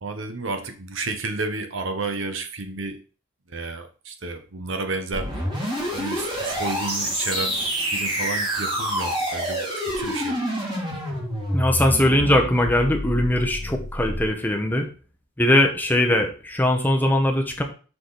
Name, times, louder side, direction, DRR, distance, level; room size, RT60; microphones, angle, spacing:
voice 1, 0.0-3.0 3.5-5.3 5.9-9.6 10.0-10.4, right 3 dB, 65° right, 7 dB, 1.0 m, -31 dB
sound 1, 5.1-14.3, equal, 25° right, 2.7 m, -27 dB
voice 2, 11.5-14.9 15.4-17.6, left 1 dB, 10° left, 2 dB, 0.9 m, -20 dB
5.9 x 4.9 x 4.0 m, 0.36 s
head